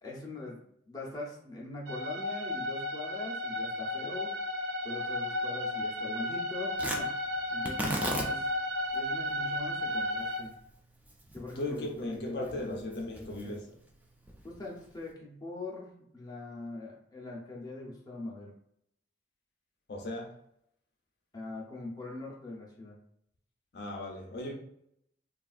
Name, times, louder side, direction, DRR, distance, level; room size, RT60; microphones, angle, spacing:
voice 1, 0.0-4.3 4.8-7.1 7.5-8.5 8.9-10.5 11.3-12.8 13.1-13.6 14.4-18.5 21.3-23.0, left 2 dB, 20° left, 0.7 m, -42 dB
sound 1, 1.9-10.4, left 1 dB, 70° right, 0.6 m, -34 dB
Tearing, 6.7-15.1, right 1 dB, 10° right, 0.3 m, -40 dB
voice 2, 11.6-13.7 19.9-20.4 23.7-24.5, left 1 dB, 60° left, 0.5 m, -37 dB
3.4 x 2.4 x 2.4 m
head